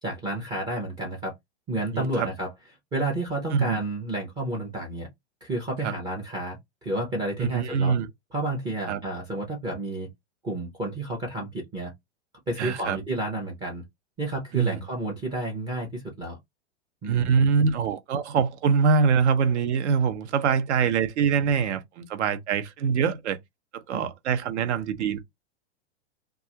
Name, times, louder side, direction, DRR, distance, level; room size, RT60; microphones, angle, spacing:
voice 1, 0.0-1.3 1.7-2.5 2.9-5.1 5.4-7.9 8.3-10.1 10.4-11.9 12.5-13.8 14.2-16.4 17.0-17.3 23.9-24.1, right 1 dB, 10° right, 0.4 m, -31 dB
voice 2, 1.9-2.3 3.5-3.8 5.8-5.9 7.4-8.1 8.9-9.0 12.6-13.0 14.5-14.8 17.0-23.4 23.7-25.2, right 6 dB, 75° right, 0.8 m, -24 dB
2.4 x 2.3 x 2.8 m
supercardioid pair, 155°, 35 cm